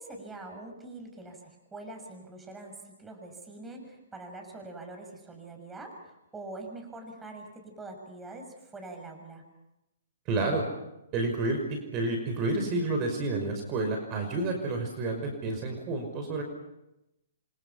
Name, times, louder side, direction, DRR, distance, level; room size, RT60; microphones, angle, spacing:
voice 1, 0.0-9.4, right 2 dB, 10° right, 3 dB, 6.6 m, -44 dB
voice 2, 10.3-10.6 11.1-16.4, right 2 dB, 30° right, 4 dB, 5.6 m, -30 dB
29.0 x 24.5 x 5.9 m, 0.93 s
figure-of-eight pair, 125°, 0 cm